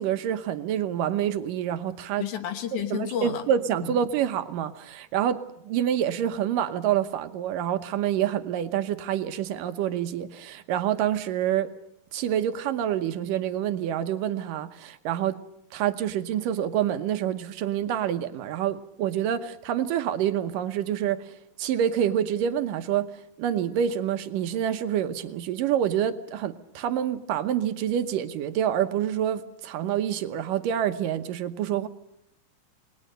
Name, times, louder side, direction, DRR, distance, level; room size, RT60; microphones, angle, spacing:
voice 1, 0.0-2.2 2.9-11.7 12.1-15.4 15.7-23.1 23.4-31.9, right 10 dB, 75° right, 9 dB, 2.6 m, -27 dB
voice 2, 2.2-3.5 3.8-4.0, left 9 dB, 65° left, 9 dB, 2.6 m, -31 dB
29.0 x 20.5 x 6.6 m, 0.77 s
omnidirectional pair, 4.0 m